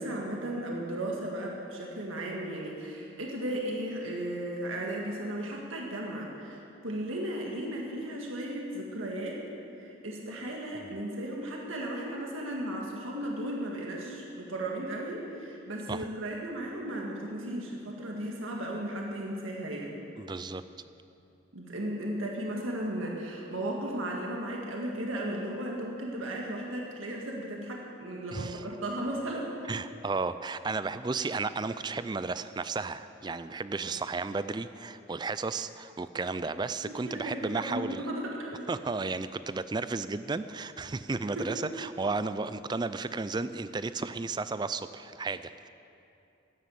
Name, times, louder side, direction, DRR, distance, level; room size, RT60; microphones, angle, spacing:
voice 1, 0.0-9.4 9.7-19.9 21.5-29.5 33.7-33.9 36.8-38.6 41.4-41.5, right 1 dB, 90° right, -1 dB, 1.8 m, -35 dB
voice 2, 20.2-20.6 28.3-28.7 29.7-38.1 38.7-45.7, right 3 dB, 20° right, 13 dB, 0.4 m, -33 dB
13.5 x 9.5 x 7.7 m, 2.7 s
head